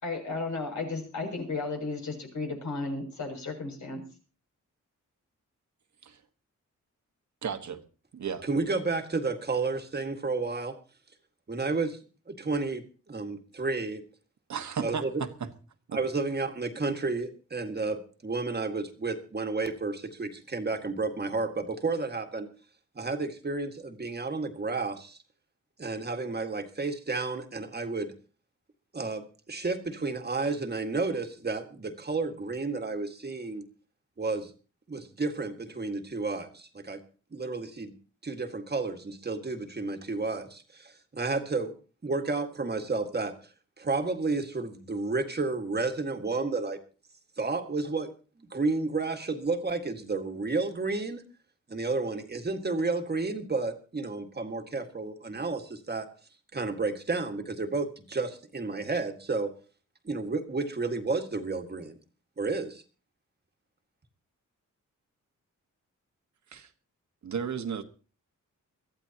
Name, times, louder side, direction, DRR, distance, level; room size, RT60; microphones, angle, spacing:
voice 1, 0.0-4.0, left 3 dB, 70° left, 7.1 m, -34 dB
voice 2, 7.4-7.8 8.1-8.4 14.5-15.5 15.9-16.0 66.5-66.7 67.2-67.8, right 6 dB, 65° right, 1.6 m, -34 dB
voice 3, 8.4-10.8 11.5-12.0 12.3-14.0 14.8-15.2 15.9-22.5 23.0-25.2 25.8-28.1 28.9-33.6 34.2-34.5 34.9-37.0 37.3-37.9 38.2-41.7 42.0-43.5 43.8-46.8 47.4-48.1 48.5-51.2 51.7-56.1 56.5-59.5 60.1-62.0 62.4-62.8, right 3 dB, 35° right, 1.8 m, -31 dB
23.5 x 14.5 x 2.9 m
wide cardioid pair, 110°, 30 cm